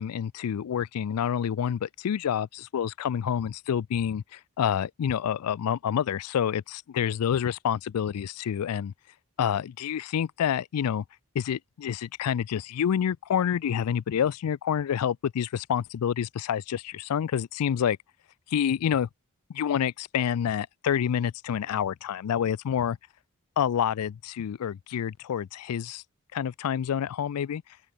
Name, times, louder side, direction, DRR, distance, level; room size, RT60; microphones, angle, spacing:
voice 1, 0.0-8.9 9.4-11.0 11.4-18.0 18.5-19.1 19.5-23.0 23.6-26.0 26.3-27.6, left 8 dB, 85° left, 0.4 m, -28 dB
open air
head